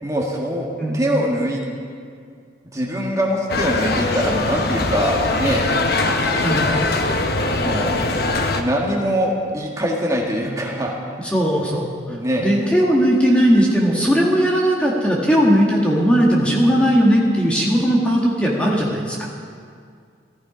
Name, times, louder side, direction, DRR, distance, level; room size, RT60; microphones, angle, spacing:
voice 1, 0.0-0.7 0.9-1.6 2.7-5.7 7.6-8.0 8.5-10.9 12.1-12.5, equal, 15° right, -2 dB, 1.7 m, -23 dB
sound 1, 3.5-8.6, left 2 dB, 55° left, 1.0 m, -21 dB
voice 2, 11.2-19.2, equal, 5° left, -3 dB, 1.6 m, -18 dB
15.0 x 14.5 x 5.0 m, 2.2 s
head